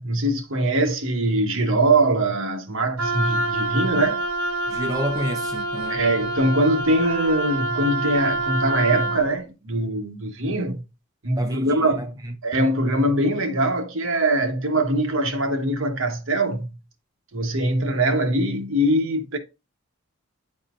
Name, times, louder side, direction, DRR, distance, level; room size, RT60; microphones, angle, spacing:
voice 1, 0.0-4.2 5.9-10.8 11.2-12.1 12.4-16.7 17.3-19.4, right 1 dB, 60° right, 1.2 m, -22 dB
Wind instrument woodwind instrument, 3.0-9.2, right 1 dB, 85° right, 1.3 m, -26 dB
voice 2, 4.7-6.0 11.4-12.3, right 1 dB, 15° right, 0.7 m, -30 dB
9.1 x 4.2 x 2.5 m
head